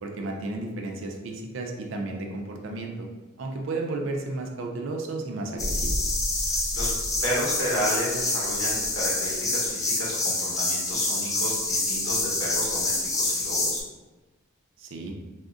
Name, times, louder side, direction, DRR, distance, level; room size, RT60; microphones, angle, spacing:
voice 1, 0.0-3.1 3.4-6.0 14.8-15.2, right 2 dB, 65° right, 2 dB, 0.4 m, -33 dB
sound 1, 5.6-13.8, left 2 dB, 15° left, 0.3 m, -27 dB
voice 2, 6.4-6.9 7.2-13.8, equal, 75° left, -6 dB, 1.1 m, -32 dB
3.6 x 2.1 x 2.4 m, 1.2 s
head